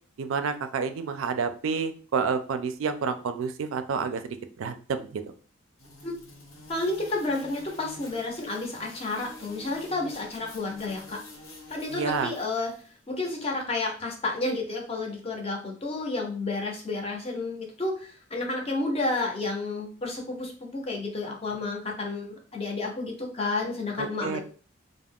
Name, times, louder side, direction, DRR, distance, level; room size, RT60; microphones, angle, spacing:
voice 1, 0.2-5.2 11.9-12.3 24.0-24.4, right 5 dB, 75° right, 9 dB, 0.3 m, -29 dB
sound 1, 5.8-12.9, left 1 dB, 75° left, 0.8 m, -48 dB
voice 2, 6.7-11.2 11.7-12.7 13.1-24.4, left 2 dB, 30° left, 0 dB, 0.5 m, -31 dB
2.3 x 2.0 x 3.5 m, 0.40 s
head